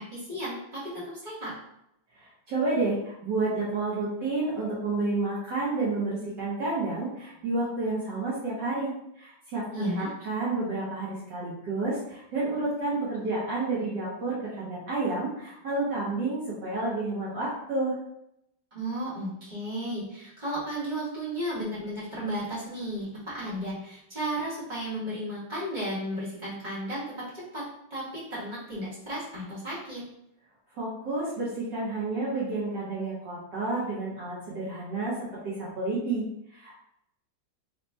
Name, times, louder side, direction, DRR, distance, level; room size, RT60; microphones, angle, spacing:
voice 1, 0.0-1.5 9.7-10.1 18.7-27.6 27.9-30.0, equal, 25° right, -9 dB, 1.4 m, -34 dB
voice 2, 2.2-18.0 30.7-35.2 35.4-36.2 36.5-36.8, right 3 dB, 60° right, -8 dB, 1.5 m, -30 dB
4.0 x 2.9 x 2.2 m, 0.78 s
omnidirectional pair, 2.3 m